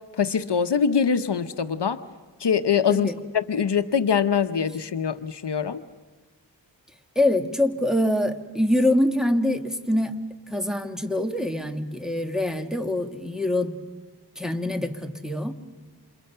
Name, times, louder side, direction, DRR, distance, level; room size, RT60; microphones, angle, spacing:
voice 1, 0.2-2.0 2.4-5.8, left 7 dB, 70° left, 10 dB, 1.0 m, -23 dB
voice 2, 7.2-10.2 10.5-13.8 14.4-15.5, left 1 dB, ahead, 4 dB, 1.8 m, -24 dB
29.0 x 28.0 x 5.7 m, 1.3 s
wide cardioid pair, 80°, 43 cm